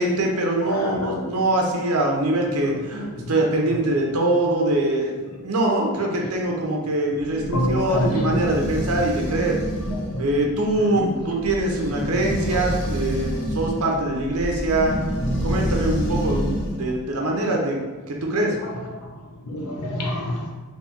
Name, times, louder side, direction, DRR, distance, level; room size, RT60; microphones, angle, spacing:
voice 1, 0.0-9.6 10.2-15.0 15.4-16.5 16.8-18.6, right 1 dB, 75° right, 0 dB, 0.8 m, -23 dB
voice 2, 0.8-1.1 7.5-8.1 10.1-10.2 19.5-20.5, left 1 dB, 85° left, 0 dB, 0.8 m, -26 dB
sound 1, 7.2-16.9, equal, 50° left, 0.9 m, -28 dB
4.1 x 2.8 x 3.6 m, 1.3 s
head